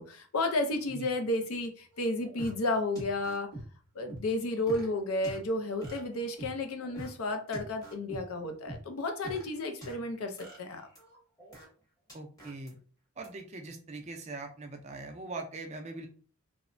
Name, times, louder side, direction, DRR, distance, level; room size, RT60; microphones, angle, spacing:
voice 1, 0.0-3.5 3.9-10.9, left 2 dB, 80° left, 0.5 m, -32 dB
sound 1, 1.9-2.5 3.0-3.6 4.1-4.9 5.2-5.4 5.8-6.6 6.8-7.1 7.5-8.2 8.7-9.9 10.4-11.6 12.1-12.7 13.2-13.3, right 1 dB, 15° left, 0.9 m, -44 dB
voice 2, 12.1-12.8 13.2-16.1, right 3 dB, 30° right, 0.4 m, -41 dB
3.0 x 2.0 x 2.5 m
head